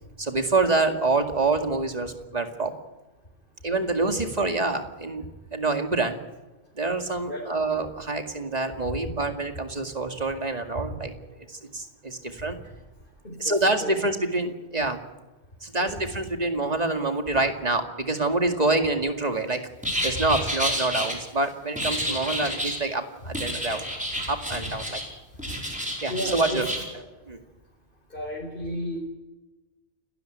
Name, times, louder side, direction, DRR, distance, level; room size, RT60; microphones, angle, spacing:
voice 1, 0.2-2.7 3.6-5.3 5.5-6.2 6.7-11.1 11.5-12.6 13.4-15.0 15.6-19.6 20.0-23.8 24.3-25.0 26.0-26.7 27.3-27.4, right 3 dB, 35° right, 5 dB, 2.3 m, -26 dB
voice 2, 13.2-13.9 15.8-15.9 22.1-22.2 24.6-24.7 26.1-27.0 28.1-29.0, equal, 50° left, -2 dB, 4.4 m, -34 dB
sound 1, 19.8-21.1 21.8-22.8 23.3-25.1 25.4-26.8, equal, 5° right, 5.1 m, -30 dB
29.0 x 13.0 x 9.3 m, 1.1 s
omnidirectional pair, 1.1 m